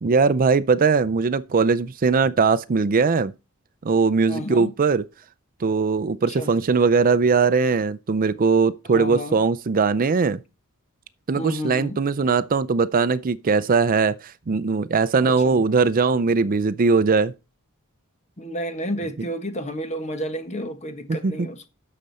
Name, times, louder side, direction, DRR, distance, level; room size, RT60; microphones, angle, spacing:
voice 1, 0.0-3.3 3.8-5.0 5.6-10.4 11.3-17.3 21.2-21.3, right 4 dB, 40° right, 0.5 m, -20 dB
voice 2, 4.3-4.7 6.3-6.5 8.8-9.4 11.4-12.0 15.2-15.6 18.4-21.7, equal, 30° left, 1.3 m, -31 dB
9.8 x 6.7 x 4.2 m
head